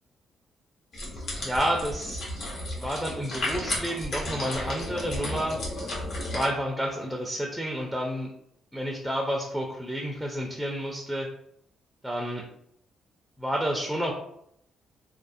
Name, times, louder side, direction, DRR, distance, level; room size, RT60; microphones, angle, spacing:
sound 1, 0.9-6.5, left 1 dB, 60° left, 0.9 m, -33 dB
voice 1, 1.4-2.2 2.8-5.6 6.2-8.3 8.7-11.3 12.0-12.4 13.4-14.1, equal, ahead, 0 dB, 0.4 m, -30 dB
2.4 x 2.0 x 2.5 m, 0.72 s
cardioid pair, 90°, 0 cm